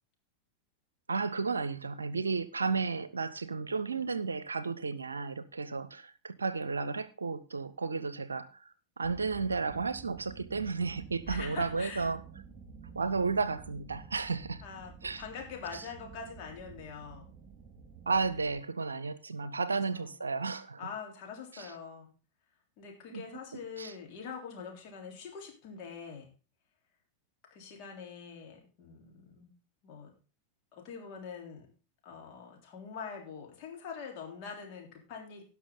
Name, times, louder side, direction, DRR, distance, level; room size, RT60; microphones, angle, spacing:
voice 1, 1.1-8.7 9.0-12.2 12.9-14.6 15.0-15.2 15.7-15.8 18.1-20.8 21.5-21.7 23.1-23.2 23.8-23.9, right 4 dB, 75° right, 0.7 m, -33 dB
sound 1, 9.0-18.6, right 6 dB, 25° right, 4.7 m, -50 dB
voice 2, 11.3-12.1 14.6-17.3 19.9-20.1 20.8-22.1 22.8-26.3 27.5-29.5 29.8-30.1 30.7-31.7 32.0-35.4, left 6 dB, 40° left, 3.6 m, -44 dB
17.5 x 6.1 x 3.9 m
figure-of-eight pair, 90°, 0 cm